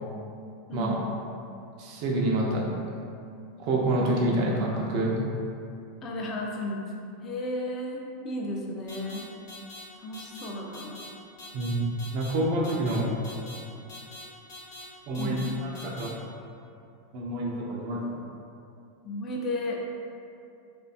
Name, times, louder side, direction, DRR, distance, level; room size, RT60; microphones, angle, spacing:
voice 1, 0.7-1.0 6.0-6.9 7.2-9.2 10.0-11.0 15.2-15.4 19.0-19.8, left 1 dB, 35° left, -1 dB, 0.4 m, -33 dB
voice 2, 1.8-2.6 3.6-5.1 11.5-11.8 12.1-13.0 15.1-15.4 15.6-16.1 17.1-18.2, right 1 dB, 50° right, -2 dB, 0.4 m, -27 dB
sound 1, 8.9-9.2 9.5-9.8 10.1-10.5 10.7-11.1 11.4-11.7 12.0-12.3 12.6-13.0 13.2-13.6 13.9-14.2 14.5-14.8 15.1-15.5 15.7-16.1, left 2 dB, 60° left, 0.7 m, -44 dB
2.5 x 2.2 x 2.4 m, 2.5 s
figure-of-eight pair, 85°, 0 cm